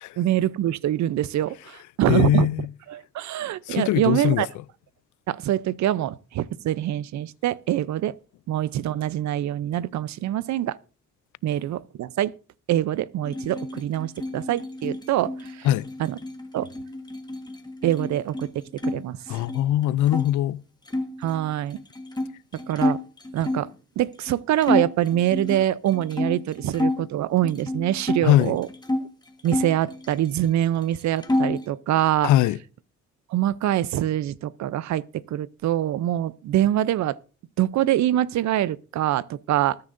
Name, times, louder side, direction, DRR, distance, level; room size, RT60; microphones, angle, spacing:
voice 1, 0.2-2.5 2.9-4.5 5.3-8.1 8.5-10.8 11.4-12.3 12.7-15.7 16.0-16.1 16.5-16.7 17.8-18.5 18.8-19.4 21.2-21.8 22.5-23.0 23.3-23.7 24.0-28.7 29.4-32.3 33.3-37.2 37.6-39.8, right 12 dB, 65° right, 0.6 m, -24 dB
voice 2, 2.1-2.7 3.7-4.5 15.6-15.9 19.3-20.6 28.2-28.6 32.2-32.6, left 13 dB, 80° left, 0.5 m, -21 dB
sound 1, 13.2-19.0 19.3-20.3 20.9-23.7 24.2-24.3 24.6-27.0 27.4-29.1 29.4-30.6 30.8-31.7, left 1 dB, 15° left, 1.4 m, -29 dB
20.0 x 9.6 x 2.6 m
cardioid pair, 90°, 30 cm